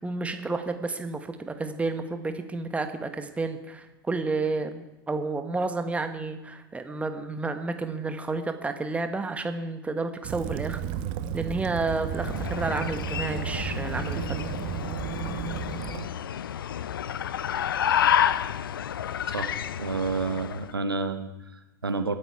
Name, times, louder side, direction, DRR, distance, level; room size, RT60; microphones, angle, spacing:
voice 1, 0.0-10.8 11.3-14.4, right 3 dB, 10° right, 8 dB, 1.4 m, -31 dB
Waves surf / Splash splatter / Trickle dribble, 10.2-16.1, right 9 dB, 45° right, 1.0 m, -33 dB
sound 1, 12.1-20.7, left 9 dB, 70° left, 0.5 m, -30 dB
voice 2, 19.3-22.2, right 4 dB, 85° right, 9 dB, 0.9 m, -30 dB
21.5 x 9.1 x 4.8 m, 1.0 s
figure-of-eight pair, 85°, 12 cm